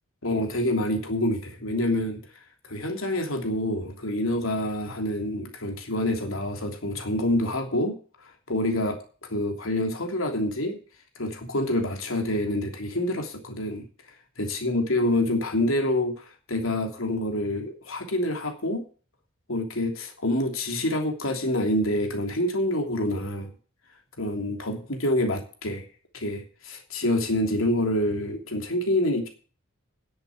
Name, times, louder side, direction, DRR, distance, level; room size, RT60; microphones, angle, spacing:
voice 1, 0.2-2.2 2.7-8.0 8.5-9.0 9.3-10.8 11.2-13.8 14.4-18.8 19.5-23.5 24.2-25.8 26.1-29.3, left 1 dB, 90° left, 3 dB, 3.1 m, -27 dB
10.5 x 8.0 x 8.4 m, 0.38 s
head